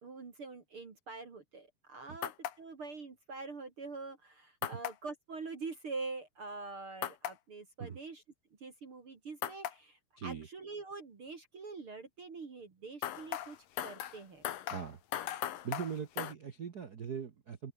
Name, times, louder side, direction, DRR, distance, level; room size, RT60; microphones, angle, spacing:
voice 1, 0.0-8.2 8.6-14.5, right 3 dB, 40° right, 3.3 m, -45 dB
sound 1, 2.2-2.6 4.6-5.0 7.0-7.4 9.4-9.8 13.0-16.3, left 11 dB, 75° left, 3.2 m, -38 dB
voice 2, 10.2-10.5 14.7-15.0 15.6-17.7, right 7 dB, 85° right, 0.8 m, -40 dB
open air
omnidirectional pair, 3.9 m